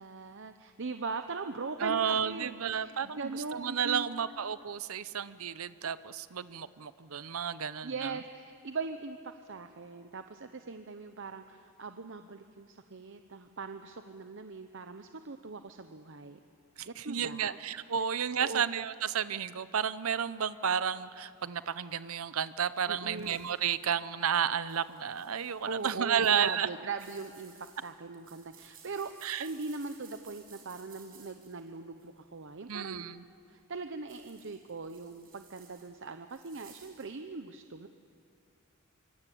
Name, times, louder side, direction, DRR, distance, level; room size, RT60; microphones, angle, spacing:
voice 1, 0.0-4.1 7.8-16.4 16.9-17.6 18.3-18.6 22.9-23.4 25.6-29.1 29.4-33.1 33.5-37.9, right 4 dB, 60° right, 8 dB, 0.9 m, -40 dB
voice 2, 1.8-8.2 16.8-26.7 29.2-29.5 32.7-33.2, right 8 dB, 85° right, 15 dB, 0.7 m, -32 dB
sound 1, 23.1-23.8 24.6-25.8 26.2-32.2 34.1-37.1, right 7 dB, 45° right, 6.3 m, -58 dB
26.0 x 24.5 x 8.5 m, 2.3 s
head